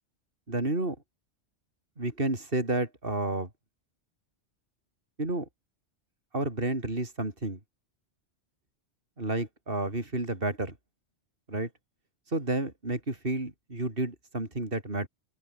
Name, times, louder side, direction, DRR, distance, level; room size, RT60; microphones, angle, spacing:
voice 1, 0.5-1.0 2.0-3.5 5.2-5.5 6.3-7.6 9.2-10.7 11.5-11.7 12.3-15.1, right 2 dB, 50° right, 4.7 m, -31 dB
open air
omnidirectional pair, 1.2 m